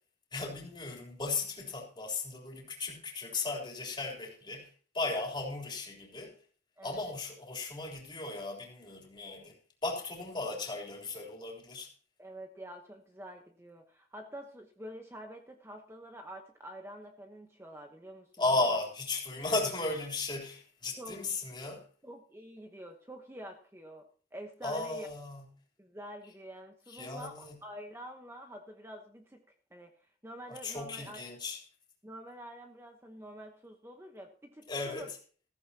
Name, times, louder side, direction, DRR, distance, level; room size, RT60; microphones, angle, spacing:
voice 1, 0.3-4.7 4.9-6.4 6.8-11.9 18.4-21.9 24.6-25.4 26.9-27.5 30.5-31.6 34.7-35.1, left 3 dB, 25° left, 3.5 m, -35 dB
voice 2, 6.8-7.1 12.2-18.3 18.6-18.8 21.0-21.2 22.0-25.1 25.8-29.4 29.7-31.2 32.0-35.1, equal, 15° right, 1.0 m, -47 dB
16.0 x 14.5 x 2.9 m
head